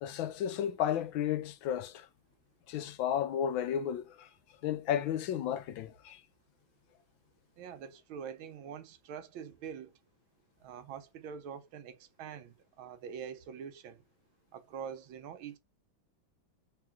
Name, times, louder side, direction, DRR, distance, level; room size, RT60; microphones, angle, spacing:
voice 1, 0.0-2.1 2.7-4.3 4.6-6.2, left 9 dB, 80° left, 1.4 m, -33 dB
voice 2, 7.6-9.9 10.6-14.0 14.5-15.6, right 7 dB, 85° right, 1.5 m, -44 dB
3.7 x 2.9 x 3.5 m
omnidirectional pair, 2.2 m